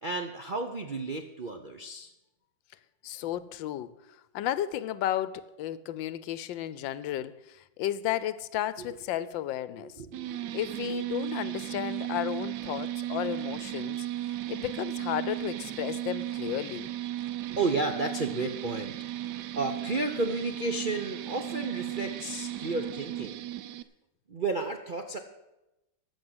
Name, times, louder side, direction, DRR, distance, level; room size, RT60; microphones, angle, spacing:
voice 1, 0.0-2.1 8.8-8.9 9.8-10.6 17.5-19.0 19.4-23.4 24.3-25.2, right 3 dB, 50° right, 0.5 m, -32 dB
voice 2, 3.0-3.9 4.3-10.0 10.5-16.9, left 12 dB, 85° left, 1.4 m, -33 dB
sound 1, 10.1-23.8, right 13 dB, 70° right, 1.1 m, -35 dB
14.5 x 6.4 x 7.9 m
omnidirectional pair, 2.0 m